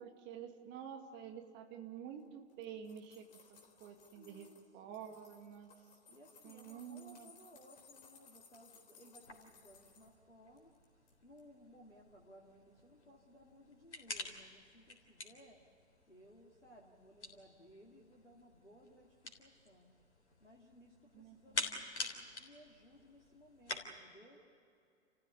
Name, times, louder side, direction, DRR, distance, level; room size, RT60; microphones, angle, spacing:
voice 1, 0.0-4.5 4.7-5.7 6.4-7.3 21.1-21.8, right 8 dB, 30° right, 5 dB, 2.2 m, -49 dB
sound 1, 2.5-4.6 4.9-10.1 10.6-11.1 11.4-11.5, left 5 dB, 25° left, 3.8 m, -62 dB
voice 2, 4.1-5.0 6.1-10.7 11.2-15.6 16.1-19.9 20.4-24.4, equal, 85° left, -2 dB, 2.5 m, -61 dB
sound 2, 9.2-23.8, left 2 dB, 70° left, 3.6 m, -48 dB
29.5 x 15.0 x 9.5 m, 2.5 s
figure-of-eight pair, 100°, 35 cm